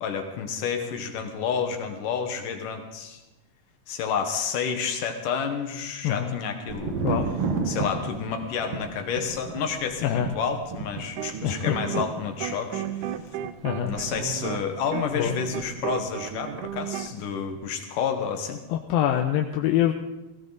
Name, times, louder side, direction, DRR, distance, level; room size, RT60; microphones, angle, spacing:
voice 1, 0.0-3.2 3.9-7.0 7.7-13.2 13.9-18.6, left 6 dB, 70° left, 5 dB, 2.8 m, -30 dB
Thunder, 6.7-16.3 16.6-17.3, right 4 dB, 55° right, 2.1 m, -34 dB
voice 2, 10.0-10.3 11.4-12.0 13.6-13.9 15.1-15.4 18.7-19.9, left 11 dB, 90° left, 3 dB, 2.6 m, -25 dB
sound 1, 11.0-12.1 12.4-17.1, right 11 dB, 75° right, 1.9 m, -33 dB
18.5 x 16.0 x 4.0 m, 1.0 s
omnidirectional pair, 4.1 m